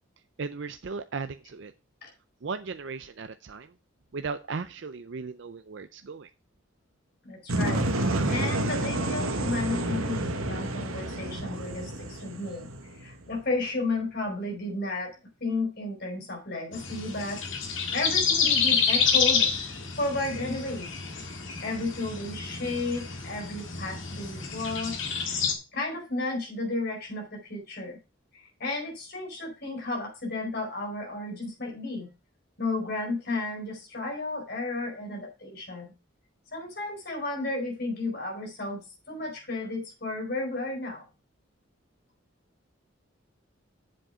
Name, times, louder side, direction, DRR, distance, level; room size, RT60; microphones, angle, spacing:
voice 1, 0.4-1.7 2.4-3.7 4.1-6.3, right 4 dB, 60° right, 10 dB, 0.5 m, -36 dB
voice 2, 7.2-12.7 13.0-15.1 15.4-17.4 17.9-20.9 21.6-25.0 25.3-25.4 25.7-28.0 28.3-32.1 32.6-35.9 36.5-41.0, left 2 dB, 50° left, 1 dB, 4.4 m, -33 dB
sound 1, 7.5-13.4, right 1 dB, 90° right, 1.4 m, -29 dB
sound 2, 16.7-25.5, left 6 dB, 70° left, 1.9 m, -28 dB
7.7 x 7.6 x 4.8 m, 0.29 s
head